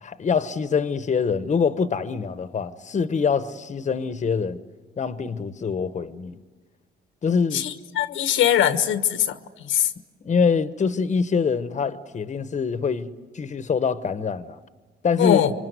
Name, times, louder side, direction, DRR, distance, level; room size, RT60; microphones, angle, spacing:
voice 1, 0.0-4.6 5.0-6.4 7.2-7.7 10.2-14.6 15.0-15.4, left 5 dB, 35° left, 1.0 m, -24 dB
voice 2, 7.5-9.9 15.2-15.5, left 10 dB, 90° left, 1.3 m, -22 dB
26.0 x 24.0 x 9.4 m
cardioid pair, 90°, 20 cm